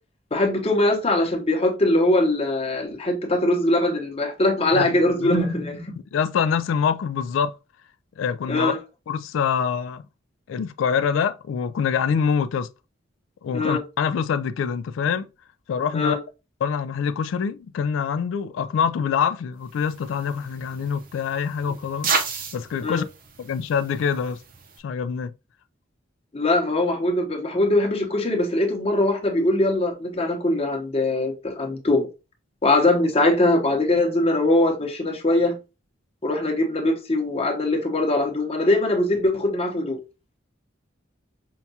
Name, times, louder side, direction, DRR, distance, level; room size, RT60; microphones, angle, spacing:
voice 1, 0.3-5.9 8.5-8.8 13.5-13.8 15.9-16.2 22.8-23.0 26.3-32.1 32.6-35.6 36.2-40.0, left 1 dB, 30° left, 0.9 m, -22 dB
voice 2, 4.7-5.3 6.1-7.5 8.2-8.7 9.1-10.0 10.5-12.7 13.4-15.3 15.7-16.2 16.6-22.1 22.5-23.0 23.4-24.4 24.8-25.3, left 6 dB, 80° left, 0.3 m, -25 dB
sound 1, 19.7-24.8, right 5 dB, 45° right, 0.7 m, -33 dB
5.6 x 2.3 x 2.7 m
head